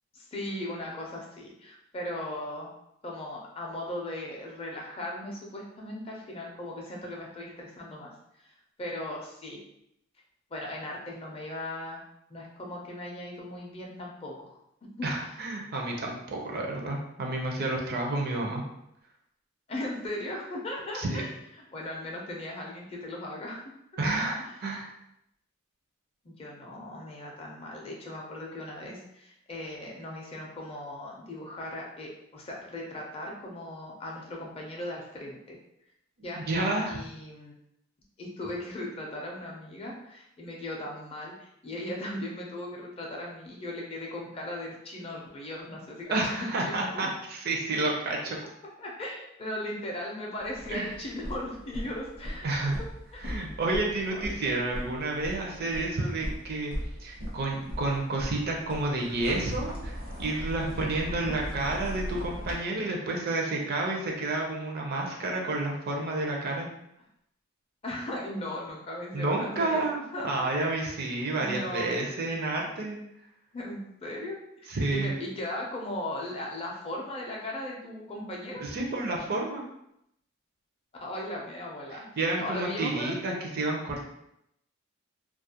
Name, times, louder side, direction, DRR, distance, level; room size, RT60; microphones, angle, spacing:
voice 1, 0.1-2.7 3.0-8.1 8.4-9.6 10.5-12.0 12.3-14.6 15.0-15.1 19.7-21.3 21.7-23.6 24.4-24.6 26.2-35.6 36.2-36.4 36.9-37.5 38.2-47.1 48.8-52.9 53.1-53.3 54.0-54.4 61.1-61.4 67.8-69.8 70.1-70.3 71.4-72.0 73.5-74.4 74.9-78.6 81.0-83.4, left 1 dB, 30° left, -2 dB, 0.5 m, -38 dB
voice 2, 15.0-18.6 20.9-21.2 24.0-24.9 36.4-37.0 46.1-48.4 50.7-50.9 52.4-52.8 53.2-56.7 57.0-66.7 69.1-73.0 74.7-75.1 78.6-79.6 82.2-84.0, right 2 dB, 50° right, 0 dB, 0.5 m, -30 dB
sound 1, 50.4-62.5, equal, 75° right, 0.8 m, -39 dB
2.3 x 2.0 x 2.7 m, 0.79 s
head